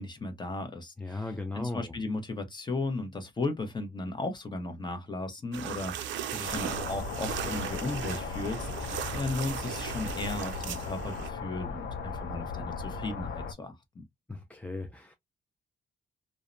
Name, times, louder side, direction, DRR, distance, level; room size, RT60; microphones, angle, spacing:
voice 1, 0.0-14.0, left 2 dB, 25° left, 0.8 m, -36 dB
voice 2, 1.0-1.9 14.3-15.2, left 2 dB, 5° left, 0.4 m, -37 dB
sound 1, 5.5-11.3, right 10 dB, 80° right, 0.4 m, -37 dB
sound 2, 6.4-13.5, left 5 dB, 75° left, 0.6 m, -37 dB
2.7 x 2.1 x 2.4 m
cardioid pair, 110°, 19 cm